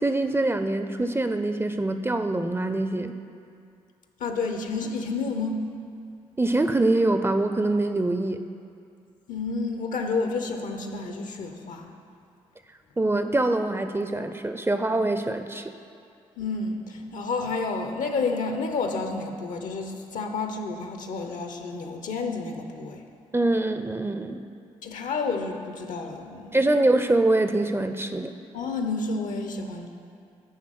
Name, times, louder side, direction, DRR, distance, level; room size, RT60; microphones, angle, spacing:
voice 1, 0.0-3.1 6.4-8.4 13.0-15.7 23.3-24.4 26.5-28.3, right 2 dB, 15° right, 8 dB, 0.5 m, -24 dB
voice 2, 4.2-5.6 9.3-11.9 16.4-23.0 24.8-26.8 28.5-29.9, left 3 dB, 65° left, 5 dB, 0.9 m, -30 dB
10.0 x 3.6 x 6.5 m, 2.5 s
hypercardioid pair, 45°, 14 cm